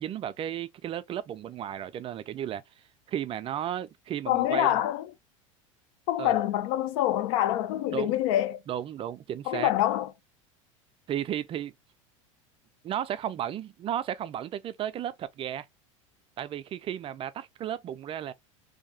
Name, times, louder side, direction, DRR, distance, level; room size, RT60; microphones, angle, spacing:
voice 1, 0.0-2.6 3.1-4.7 6.2-6.4 7.9-8.1 8.7-9.7 11.1-11.7 12.8-15.7 16.4-18.3, right 10 dB, 35° right, 0.4 m, -34 dB
voice 2, 4.3-5.1 6.1-8.6 9.5-10.1, left 13 dB, 70° left, 0.5 m, -26 dB
2.7 x 2.2 x 2.7 m
hypercardioid pair, 90°, 17 cm